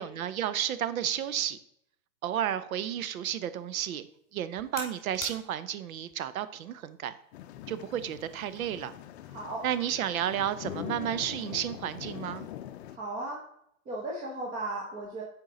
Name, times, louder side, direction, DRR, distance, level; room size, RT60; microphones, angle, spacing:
voice 1, 0.0-1.6 2.2-4.0 4.3-7.2 7.7-8.9 9.6-12.5, right 10 dB, 80° right, 14 dB, 0.7 m, -32 dB
sound 1, 3.1-8.2, left 4 dB, 20° left, 2.0 m, -48 dB
sound 2, 7.3-13.0, left 12 dB, 50° left, 0.5 m, -43 dB
voice 2, 9.3-9.6 12.9-13.4 13.8-15.2, right 2 dB, 20° right, -2 dB, 0.9 m, -36 dB
7.2 x 4.5 x 3.8 m, 0.73 s
hypercardioid pair, 145°, 41 cm